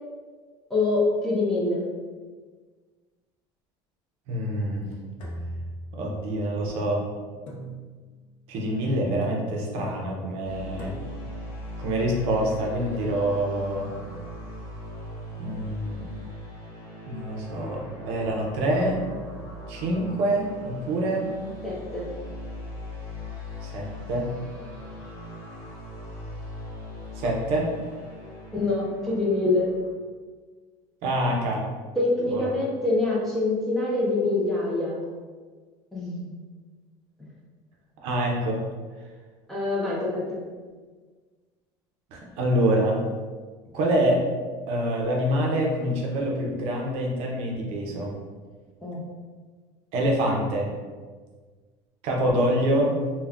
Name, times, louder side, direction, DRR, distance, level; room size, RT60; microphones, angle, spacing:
voice 1, 0.7-1.9 21.6-22.1 28.5-29.7 32.0-35.0 35.9-36.3 39.5-40.4 48.8-49.0, left 2 dB, 5° left, -7 dB, 0.4 m, -25 dB
voice 2, 4.3-4.9 5.9-7.0 8.5-10.9 11.8-13.9 15.4-16.1 17.1-19.0 19.7-21.2 23.6-24.3 27.2-27.7 31.0-31.6 32.3-32.5 38.0-38.6 42.1-43.0 43.7-44.2 44.7-48.2 49.9-50.7 52.0-53.0, right 1 dB, 55° right, -1 dB, 0.6 m, -26 dB
sound 1, 5.2-6.4 7.5-8.3 9.2-9.8 10.8-11.4, right 1 dB, 55° left, 0.6 m, -39 dB
sound 2, 10.4-29.9, left 1 dB, 30° left, 1.1 m, -40 dB
2.3 x 2.1 x 3.5 m, 1.5 s
cardioid pair, 170°, 12 cm